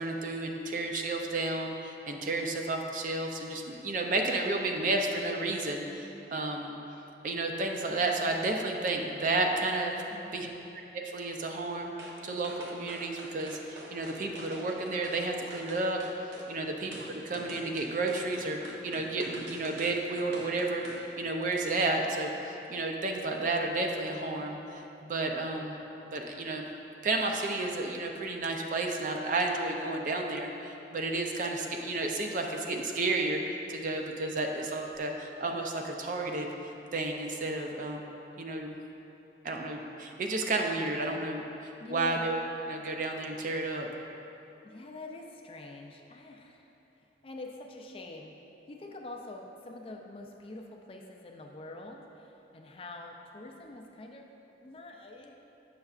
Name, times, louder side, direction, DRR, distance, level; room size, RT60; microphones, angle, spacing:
voice 1, 0.0-6.7 7.2-9.9 10.3-10.5 10.9-11.9 12.2-16.0 16.5-26.7 27.0-36.5 36.9-38.0 38.4-38.7 39.4-42.4 42.7-43.9, right 2 dB, 45° right, 2 dB, 0.4 m, -32 dB
voice 2, 10.1-10.6 16.6-17.0 41.8-42.4 44.6-48.4 48.7-55.4, left 2 dB, 30° left, 2 dB, 0.4 m, -46 dB
sound 1, 12.0-12.2 12.4-15.2 15.5-16.5 16.9-21.1 21.4-21.5, right 1 dB, 75° right, 0.8 m, -46 dB
6.7 x 6.4 x 2.4 m, 2.9 s
head